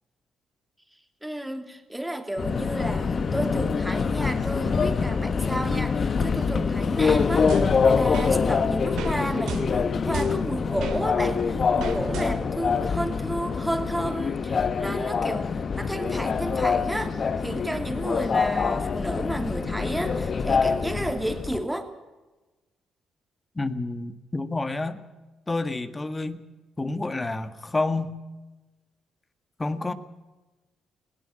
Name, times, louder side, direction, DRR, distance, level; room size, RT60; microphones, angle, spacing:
voice 1, 1.2-15.5 15.8-21.9, right 1 dB, 5° right, 7 dB, 2.8 m, -32 dB
Subway metro underground, 2.4-21.6, left 5 dB, 45° left, 1.2 m, -25 dB
sound 1, 7.5-8.3 9.0-9.2 9.5-11.0 11.8-12.6, right 7 dB, 80° right, 2.9 m, -35 dB
voice 2, 23.6-25.0 25.5-26.4 26.8-28.2 29.6-29.9, left 2 dB, 20° left, 11 dB, 1.7 m, -29 dB
21.0 x 17.5 x 7.7 m, 1.1 s
cardioid pair, 90°, 0 cm